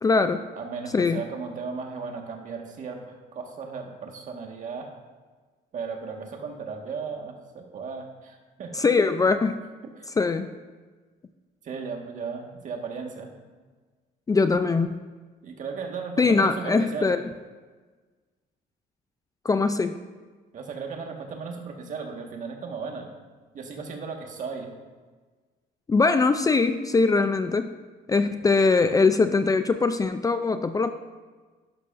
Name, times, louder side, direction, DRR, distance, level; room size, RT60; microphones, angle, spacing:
voice 1, 0.0-0.4 0.9-1.2 8.7-9.6 10.2-10.5 14.3-15.0 16.2-17.2 19.4-20.0 25.9-27.7 28.1-30.9, left 4 dB, 20° left, 9 dB, 0.4 m, -22 dB
voice 2, 0.5-4.9 5.7-8.9 10.0-10.1 11.6-13.3 15.4-17.1 20.5-23.1 23.5-24.7, right 5 dB, 50° right, 2 dB, 1.7 m, -36 dB
11.5 x 11.0 x 2.6 m, 1.4 s
cardioid pair, 110°, 17 cm